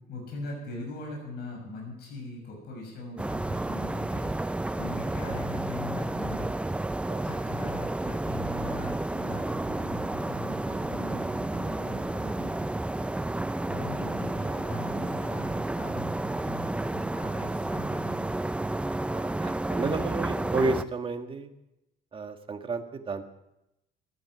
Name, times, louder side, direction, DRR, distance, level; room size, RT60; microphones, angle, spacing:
voice 1, 0.1-6.5 7.2-12.6 13.7-18.3, left 2 dB, 70° left, 0 dB, 6.6 m, -41 dB
sound 1, 3.2-20.8, right 2 dB, 5° right, 0.5 m, -31 dB
voice 2, 19.1-21.5 22.1-23.2, right 3 dB, 30° right, 6 dB, 1.7 m, -31 dB
14.5 x 14.0 x 6.2 m, 0.88 s
cardioid pair, 110°, 17 cm